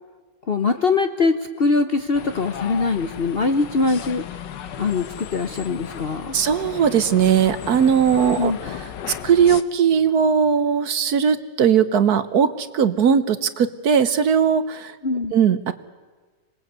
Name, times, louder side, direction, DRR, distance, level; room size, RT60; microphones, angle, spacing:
voice 1, 0.5-4.2 4.8-6.4 8.4-8.7 15.0-15.3, left 4 dB, 45° left, 8 dB, 0.9 m, -22 dB
sound 1, 2.1-9.6, left 9 dB, 75° left, 1.6 m, -35 dB
voice 2, 6.3-8.5 9.1-15.0 15.3-15.7, right 7 dB, 65° right, 12 dB, 1.4 m, -19 dB
26.0 x 20.0 x 8.1 m, 1.4 s
omnidirectional pair, 1.9 m